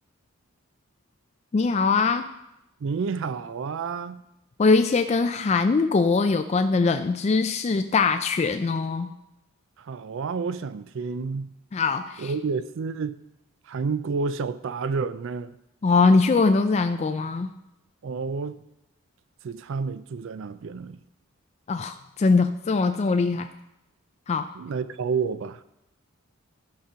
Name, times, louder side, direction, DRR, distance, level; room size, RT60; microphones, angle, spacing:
voice 1, 1.5-2.3 4.6-9.1 11.7-12.3 15.8-17.5 21.7-23.5 24.3-24.5, left 4 dB, 30° left, 7 dB, 0.3 m, -22 dB
voice 2, 2.8-4.2 9.8-11.5 12.2-13.2 13.7-15.6 18.0-18.6 19.4-21.0 24.5-25.6, right 5 dB, 60° right, 14 dB, 0.4 m, -30 dB
13.0 x 5.2 x 5.5 m, 0.88 s
head